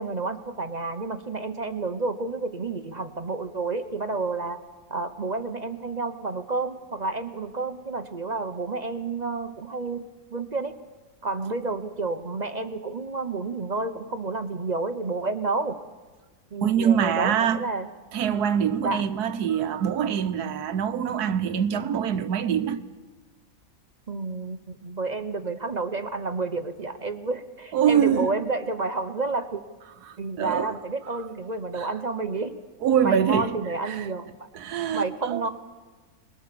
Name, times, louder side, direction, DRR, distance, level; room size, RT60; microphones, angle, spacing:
voice 1, 0.0-4.6 4.9-10.8 11.2-15.8 16.5-17.9 18.8-19.1 24.1-29.6 30.2-32.5 33.0-34.3 34.9-35.5, right 3 dB, 35° right, 0.9 m, -30 dB
voice 2, 16.6-17.6 18.1-22.8 27.7-28.3 30.1-30.7 31.8-31.9 32.8-33.5 33.8-34.1 34.5-35.4, right 8 dB, 90° right, 1.5 m, -24 dB
22.5 x 21.5 x 6.9 m
omnidirectional pair, 1.6 m